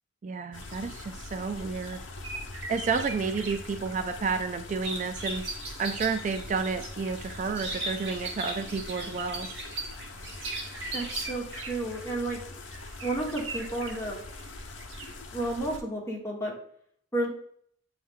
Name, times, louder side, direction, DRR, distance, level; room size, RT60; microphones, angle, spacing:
voice 1, 0.2-2.0 2.7-5.4 5.8-9.5, right 5 dB, 40° right, 8 dB, 0.3 m, -31 dB
sound 1, 0.5-15.8, left 2 dB, 85° left, 0.8 m, -43 dB
sound 2, 0.6-15.6, right 3 dB, 80° right, 1.1 m, -45 dB
sound 3, 4.8-11.2, right 2 dB, 60° right, 1.5 m, -38 dB
voice 2, 10.9-12.4 13.0-14.2 15.3-16.6 17.1-17.3, right 1 dB, 15° left, -2 dB, 1.4 m, -31 dB
8.4 x 3.2 x 3.6 m, 0.65 s
head